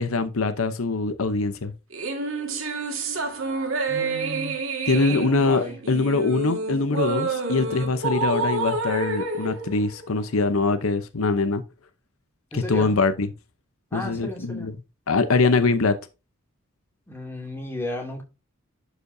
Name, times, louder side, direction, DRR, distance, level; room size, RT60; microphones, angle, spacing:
voice 1, 0.0-1.7 4.9-11.6 12.5-13.3 13.9-14.7 15.1-16.0, left 3 dB, 85° left, 0.8 m, -23 dB
sound 1, 1.9-10.5, right 3 dB, 70° right, 2.1 m, -28 dB
voice 2, 3.9-4.5 4.9-5.8 12.5-12.9 13.9-14.7 17.1-18.2, left 1 dB, 10° left, 2.6 m, -34 dB
11.5 x 5.0 x 2.7 m
head